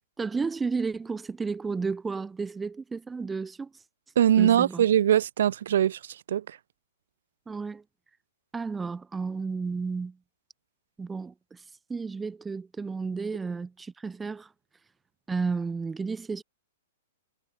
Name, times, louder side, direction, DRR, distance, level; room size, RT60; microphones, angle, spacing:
voice 1, 0.2-3.7 4.4-4.9 7.5-7.8 8.5-10.2 11.0-11.6 11.9-14.5 15.3-16.4, right 4 dB, 10° right, 4.5 m, -32 dB
voice 2, 4.2-6.6, right 10 dB, 70° right, 1.8 m, -22 dB
hypercardioid pair, 155°, 0 cm